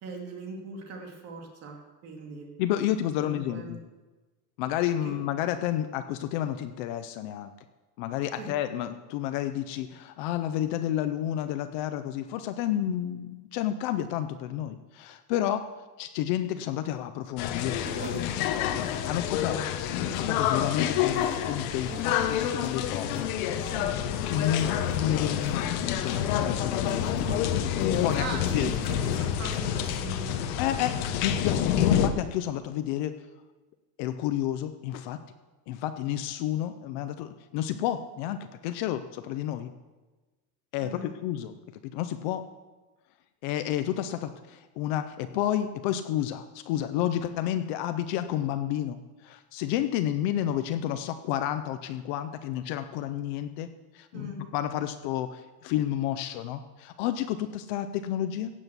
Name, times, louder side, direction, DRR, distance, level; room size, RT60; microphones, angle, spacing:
voice 1, 0.0-1.8 2.0-2.5 3.1-3.7 5.0-5.1 8.4-8.5 19.4-19.6 23.7-23.9 28.2-30.6 40.8-41.2 54.1-54.4, right 3 dB, 30° right, 1 dB, 2.6 m, -40 dB
voice 2, 2.6-3.8 4.6-7.5 8.0-15.7 16.0-23.2 24.3-27.1 27.5-28.7 30.6-33.1 34.0-35.2 35.7-38.4 38.6-39.7 40.7-41.5 41.9-42.4 43.4-49.0 49.2-58.5, left 11 dB, 35° left, 10 dB, 0.4 m, -31 dB
sound 1, 17.4-32.1, left 10 dB, 60° left, 1.4 m, -28 dB
sound 2, 17.5-32.1, right 3 dB, 15° right, 1.8 m, -46 dB
16.0 x 8.1 x 8.0 m, 1.2 s
supercardioid pair, 175°, 48 cm